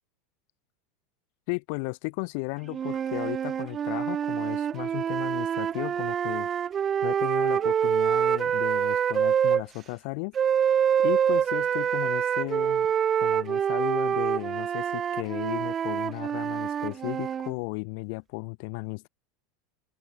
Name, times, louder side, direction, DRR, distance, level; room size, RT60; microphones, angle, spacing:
voice 1, 1.5-6.5 7.0-10.4 11.0-12.9 13.2-19.1, left 36 dB, 65° left, 2.8 m, -35 dB
sound 1, 2.7-9.6 10.3-17.5, right 8 dB, 30° right, 0.4 m, -26 dB
open air
supercardioid pair, 110°, 0 cm